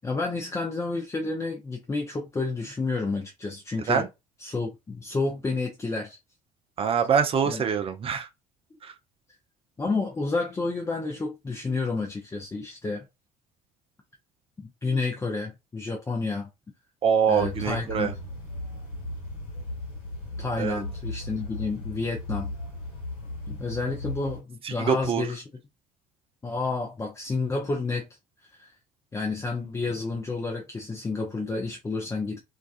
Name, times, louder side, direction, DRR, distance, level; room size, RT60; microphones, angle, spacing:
voice 1, 0.0-4.0 4.4-6.2 7.5-7.6 9.8-13.0 14.8-16.5 17.3-18.2 20.4-22.5 23.5-25.4 26.4-28.0 28.5-28.7 29.1-32.4, left 3 dB, 15° left, 0.6 m, -30 dB
voice 2, 6.8-8.3 8.8-8.9 17.0-18.1 20.6-20.8 24.6-25.2, right 7 dB, 30° right, 0.4 m, -24 dB
sound 1, 17.4-24.4, left 2 dB, 65° left, 1.1 m, -36 dB
2.3 x 2.3 x 2.4 m
figure-of-eight pair, 55°, 19 cm